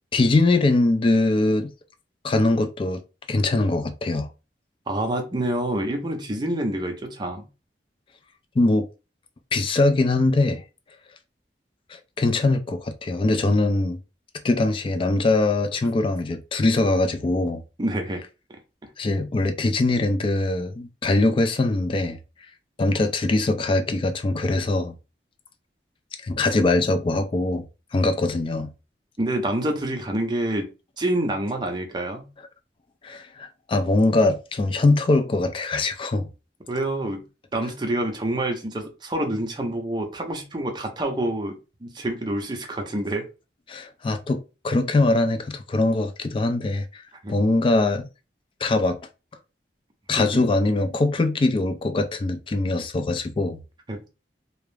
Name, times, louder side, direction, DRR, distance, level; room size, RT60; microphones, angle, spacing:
voice 1, 0.1-1.7 2.2-3.0 3.3-4.3 8.6-8.9 9.5-10.6 11.9-14.0 14.4-17.6 19.0-22.2 22.8-24.9 26.2-27.7 27.9-28.7 33.0-36.3 43.7-47.0 47.3-48.1 48.6-49.0 50.1-53.6, left 2 dB, 30° left, 0.3 m, -22 dB
voice 2, 4.9-7.5 17.8-18.2 29.2-30.7 31.0-32.3 36.7-37.2 37.5-43.2 47.2-47.3 50.2-50.4 53.9-54.1, right 1 dB, 25° right, 0.5 m, -27 dB
2.3 x 2.0 x 3.1 m
head